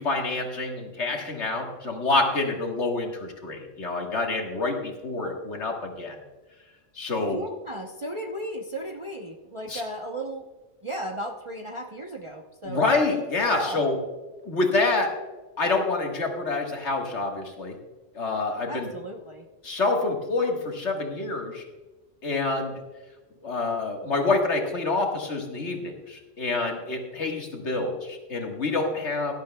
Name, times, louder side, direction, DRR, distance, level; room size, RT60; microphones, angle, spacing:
voice 1, 0.0-6.2 7.0-7.4 9.7-9.8 12.7-14.0 14.4-15.1 15.6-17.8 18.1-18.9 19.6-21.6 22.2-22.7 23.4-29.3, left 3 dB, 60° left, 2 dB, 1.8 m, -27 dB
voice 2, 7.2-10.5 10.8-12.8 13.5-13.8 18.7-19.5, right 1 dB, 30° right, 1 dB, 0.7 m, -35 dB
17.0 x 12.0 x 2.2 m, 1.2 s
omnidirectional pair, 1.3 m